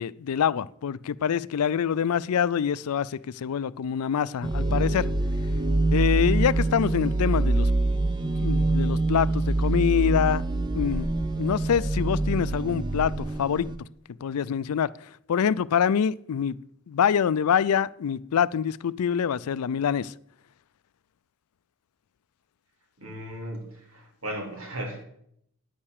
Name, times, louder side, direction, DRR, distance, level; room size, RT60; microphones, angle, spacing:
voice 1, 0.0-5.1 5.9-7.7 8.4-10.4 10.7-11.1 11.4-13.7 14.2-14.9 15.3-16.6 16.9-20.1, left 8 dB, 90° left, 0.4 m, -25 dB
sound 1, 4.4-13.8, right 2 dB, 20° right, 0.6 m, -25 dB
voice 2, 23.0-25.1, right 1 dB, 70° right, 3.3 m, -36 dB
9.4 x 8.8 x 6.6 m
head